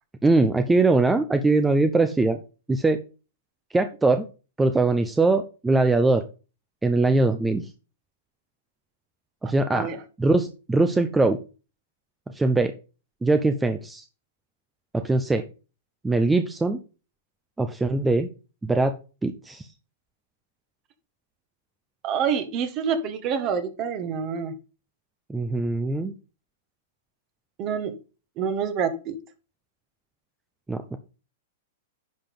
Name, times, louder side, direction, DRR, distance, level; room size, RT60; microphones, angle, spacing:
voice 1, 0.2-2.4 2.7-3.0 3.7-4.2 4.6-6.2 6.8-7.6 9.4-9.9 10.2-11.4 12.3-12.7 13.2-14.0 14.9-15.4 16.0-16.8 17.6-18.3 18.6-18.9 19.2-19.7 25.3-26.1 30.7-31.0, right 2 dB, 10° right, 8 dB, 0.8 m, -21 dB
voice 2, 9.7-10.0 22.0-24.5 27.6-28.0 28.4-29.2, right 6 dB, 40° right, 9 dB, 1.7 m, -27 dB
10.5 x 5.1 x 3.8 m, 0.32 s
hypercardioid pair, 125°, 0 cm